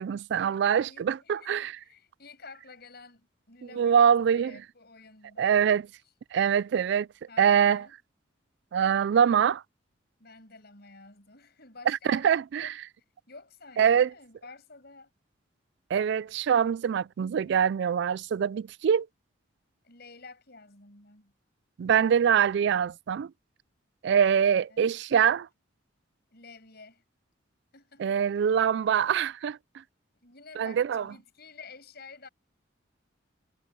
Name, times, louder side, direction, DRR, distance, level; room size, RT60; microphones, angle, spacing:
voice 1, 0.0-1.7 3.8-4.5 5.4-5.8 6.3-7.1 7.4-7.8 8.7-9.6 11.9-12.7 13.8-14.1 15.9-19.1 21.8-23.3 24.0-25.5 28.0-29.6 30.6-31.0, right 8 dB, 60° right, 0.3 m, -24 dB
voice 2, 0.8-5.6 7.3-8.0 10.2-12.3 12.6-12.7 13.3-15.1 17.4-17.7 19.8-21.3 24.2-24.9 26.3-27.0 27.7-29.0 30.2-32.3, left 4 dB, 55° left, 7.4 m, -51 dB
head